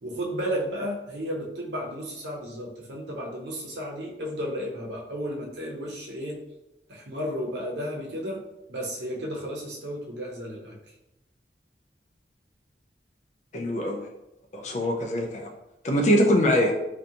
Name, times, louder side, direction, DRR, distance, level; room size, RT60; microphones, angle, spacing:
voice 1, 0.0-6.4 6.9-8.4 8.7-10.8, equal, 80° right, -1 dB, 0.6 m, -33 dB
voice 2, 13.5-14.0 14.5-15.5 15.8-16.7, equal, 40° left, 2 dB, 0.4 m, -23 dB
2.5 x 2.2 x 2.7 m, 0.91 s
head